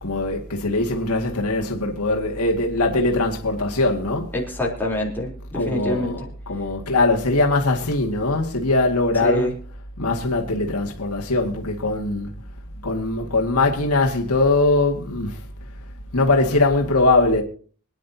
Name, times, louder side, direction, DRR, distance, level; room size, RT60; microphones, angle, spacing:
voice 1, 0.0-4.4 5.5-9.5 10.0-12.3 12.8-15.5 16.1-17.4, left 2 dB, 85° left, 2.1 m, -21 dB
voice 2, 4.3-6.1 9.2-9.5, left 1 dB, 10° left, 3.7 m, -25 dB
25.0 x 10.0 x 2.9 m
head